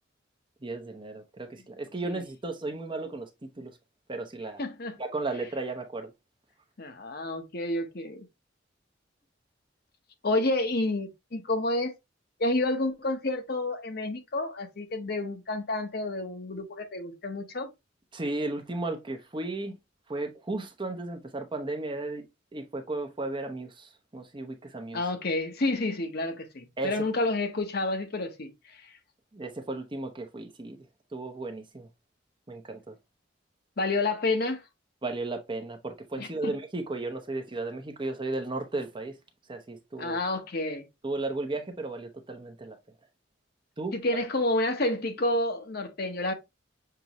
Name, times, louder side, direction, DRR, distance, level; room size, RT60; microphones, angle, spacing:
voice 1, 0.6-3.8 4.1-4.6 5.0-6.1 18.1-19.8 20.1-22.3 22.5-25.0 26.8-27.0 29.3-30.8 31.1-31.9 32.5-33.0 35.0-39.1 39.5-40.2 41.0-42.8 43.8-44.0, right 2 dB, 25° right, 0.8 m, -35 dB
voice 2, 4.6-5.0 6.8-8.3 10.2-11.9 12.4-17.7 24.9-28.5 33.8-34.6 36.2-36.6 40.0-40.9 43.9-46.3, left 2 dB, 55° left, 0.9 m, -29 dB
6.7 x 2.6 x 2.9 m
head